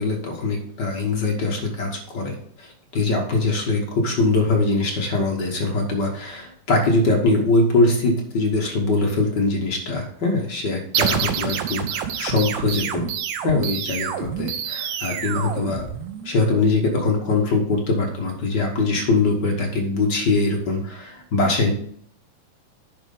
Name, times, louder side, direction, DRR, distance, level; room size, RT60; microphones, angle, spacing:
voice 1, 0.0-13.1 13.4-15.9 16.2-21.7, left 3 dB, 55° left, 1 dB, 1.3 m, -22 dB
sound 1, 10.9-16.4, right 8 dB, 75° right, 2.0 m, -27 dB
10.5 x 4.6 x 5.4 m, 0.63 s
omnidirectional pair, 3.4 m